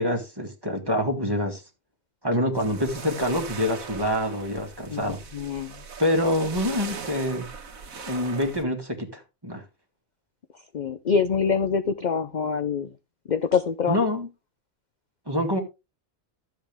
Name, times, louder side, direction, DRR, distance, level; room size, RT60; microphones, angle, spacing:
voice 1, 0.0-1.6 2.2-5.2 6.0-7.5 8.1-9.6 13.9-14.3 15.3-15.6, left 1 dB, 15° right, 2.0 m, -26 dB
sound 1, 2.5-8.6, right 5 dB, 80° right, 1.7 m, -40 dB
voice 2, 4.9-5.8 10.7-12.9 13.3-14.0, left 6 dB, 50° left, 0.5 m, -25 dB
13.0 x 7.6 x 3.5 m
omnidirectional pair, 1.4 m